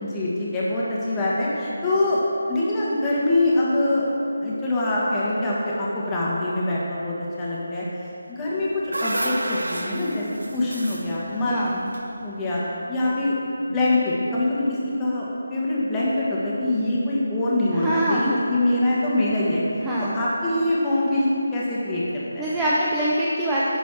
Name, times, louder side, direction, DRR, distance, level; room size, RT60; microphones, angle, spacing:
voice 1, 0.0-2.2 2.5-4.0 4.4-7.8 8.3-10.2 10.5-11.6 12.2-12.6 12.9-15.2 15.5-19.6 20.0-22.4, left 1 dB, 15° left, -7 dB, 1.5 m, -24 dB
sound 1, 8.4-12.7, right 1 dB, 90° right, 0.9 m, -31 dB
voice 2, 11.5-11.8 17.7-18.5 19.8-20.2 22.4-23.8, right 1 dB, 10° right, -8 dB, 0.6 m, -24 dB
11.0 x 4.0 x 6.1 m, 2.8 s
figure-of-eight pair, 165°, 0 cm